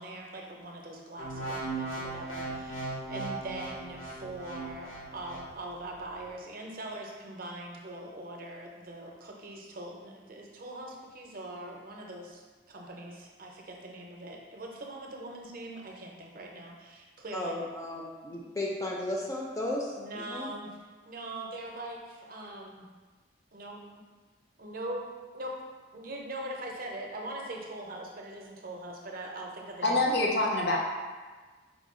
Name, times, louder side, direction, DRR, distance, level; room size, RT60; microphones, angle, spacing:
voice 1, 0.0-17.6 20.0-20.8 21.1-22.9 23.5-23.8 24.6-25.1 25.3-25.5 25.9-30.0, right 1 dB, 45° right, 0 dB, 0.5 m, -42 dB
sound 1, 1.2-5.5 6.1-6.3, right 2 dB, 85° left, 0.9 m, -38 dB
voice 2, 17.3-20.5, left 1 dB, 15° left, -2 dB, 0.4 m, -34 dB
voice 3, 29.8-30.8, left 2 dB, 55° left, -1 dB, 0.6 m, -25 dB
4.9 x 2.2 x 3.6 m, 1.4 s
head